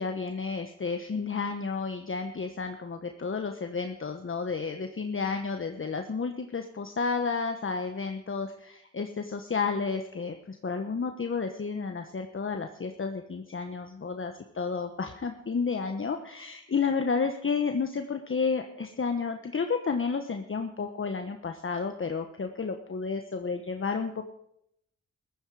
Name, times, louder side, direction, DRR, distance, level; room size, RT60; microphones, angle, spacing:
voice 1, 0.0-24.2, left 5 dB, 40° left, 6 dB, 1.2 m, -31 dB
15.0 x 14.0 x 4.9 m, 0.77 s
cardioid pair, 50°, 32 cm